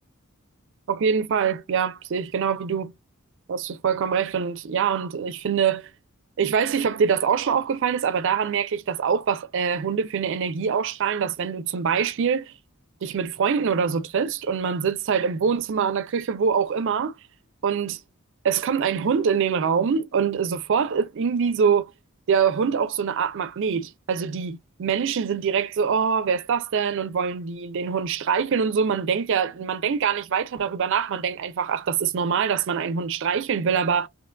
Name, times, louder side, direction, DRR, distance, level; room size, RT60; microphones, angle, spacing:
voice 1, 0.9-2.9 3.5-5.9 6.4-12.5 13.0-17.1 17.6-18.0 18.4-21.9 22.3-34.1, right 6 dB, 60° right, 0.4 m, -24 dB
2.8 x 2.2 x 2.2 m
head